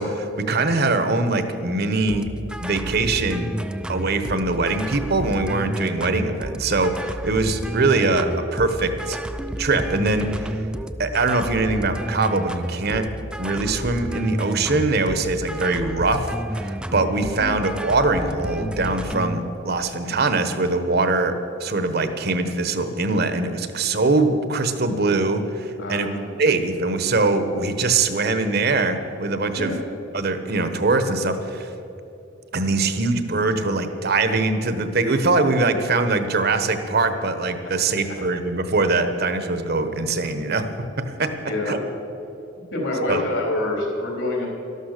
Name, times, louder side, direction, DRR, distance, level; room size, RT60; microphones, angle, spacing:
voice 1, 0.0-2.3 2.6-3.5 3.9-9.2 9.6-10.7 11.0-13.1 13.4-21.3 21.6-26.1 26.4-29.7 30.1-31.7 32.5-40.7 41.0-41.3 41.7-41.8 43.1-43.2, right 3 dB, 55° right, 9 dB, 1.1 m, -22 dB
sound 1, 2.1-19.4, right 1 dB, 5° right, 0.4 m, -31 dB
voice 2, 25.8-26.3 29.6-29.8 41.4-41.8 42.7-44.5, left 1 dB, 70° left, -1 dB, 3.8 m, -26 dB
12.5 x 12.5 x 6.6 m, 2.9 s
head